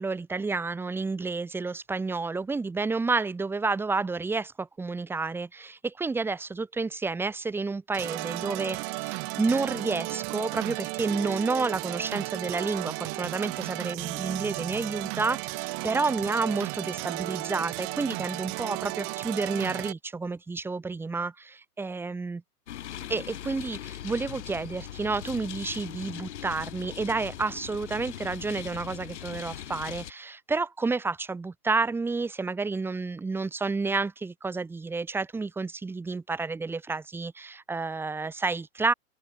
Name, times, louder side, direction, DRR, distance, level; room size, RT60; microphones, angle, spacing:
voice 1, 0.0-22.4 23.1-38.9, right 4 dB, 5° right, 1.5 m, -30 dB
sound 1, 7.9-19.9, right 40 dB or more, 30° right, 4.0 m, -34 dB
sound 2, 22.7-30.1, left 11 dB, 45° left, 6.5 m, -40 dB
open air
figure-of-eight pair, 115°, 46 cm